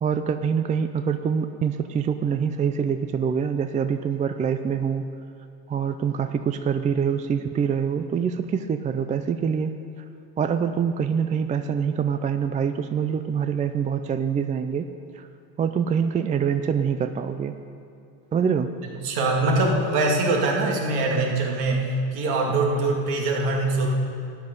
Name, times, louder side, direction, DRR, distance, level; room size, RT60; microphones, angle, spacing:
voice 1, 0.0-5.0 5.7-9.7 10.4-14.9 15.2-15.3 15.6-17.5 18.3-18.7, right 7 dB, 20° right, 9 dB, 0.4 m, -25 dB
voice 2, 18.8-21.9 22.1-23.9, right 2 dB, 60° right, 0 dB, 2.4 m, -23 dB
13.0 x 9.7 x 5.4 m, 2.6 s
hypercardioid pair, 90°, 42 cm